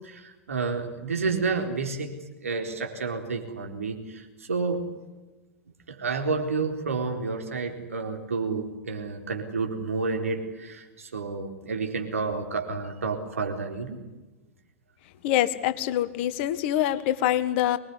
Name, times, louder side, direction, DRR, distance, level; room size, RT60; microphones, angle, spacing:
voice 1, 0.0-2.1 2.4-4.8 5.9-14.0, right 4 dB, 80° right, 4 dB, 4.1 m, -30 dB
voice 2, 15.2-17.8, left 12 dB, 55° left, 13 dB, 1.7 m, -25 dB
24.5 x 20.5 x 9.9 m, 1.1 s
figure-of-eight pair, 95°, 7 cm